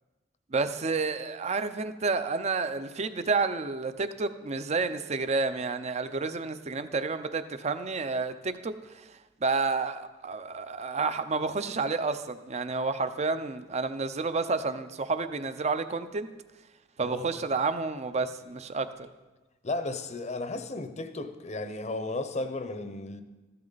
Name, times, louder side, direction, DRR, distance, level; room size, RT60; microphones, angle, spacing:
voice 1, 0.5-8.7 9.4-16.3 17.0-18.9, right 4 dB, 35° right, 0.6 m, -30 dB
voice 2, 17.0-17.3 19.6-23.2, left 2 dB, 35° left, 0.8 m, -34 dB
14.0 x 10.5 x 4.0 m
head